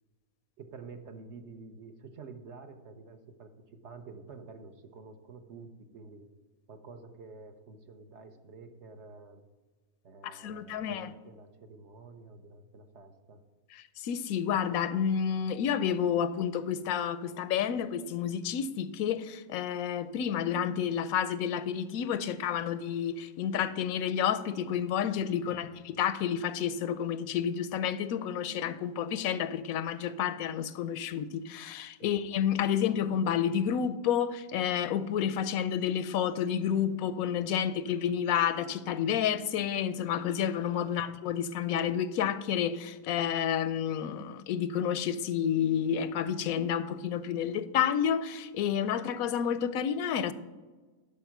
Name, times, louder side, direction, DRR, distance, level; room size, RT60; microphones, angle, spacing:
voice 1, 0.6-6.3 6.7-9.4 10.0-13.4 25.4-25.7 32.0-32.1, right 4 dB, 60° right, 1.1 m, -49 dB
voice 2, 10.2-11.1 13.7-50.3, left 8 dB, 90° left, 1.0 m, -30 dB
11.0 x 4.9 x 5.9 m
omnidirectional pair, 1.5 m